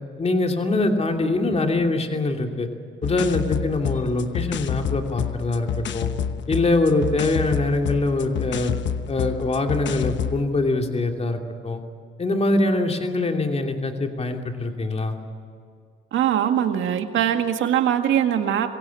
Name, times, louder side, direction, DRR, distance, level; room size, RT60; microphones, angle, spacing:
voice 1, 0.2-2.7 3.0-6.1 6.5-8.7 9.1-11.8 12.2-15.2, left 2 dB, 30° left, 3 dB, 2.8 m, -23 dB
sound 1, 3.0-10.4, left 9 dB, 70° left, 1.0 m, -29 dB
voice 2, 16.1-18.7, right 10 dB, 80° right, 6 dB, 1.9 m, -21 dB
24.0 x 16.5 x 8.5 m, 2.2 s
cardioid pair, 90°, 20 cm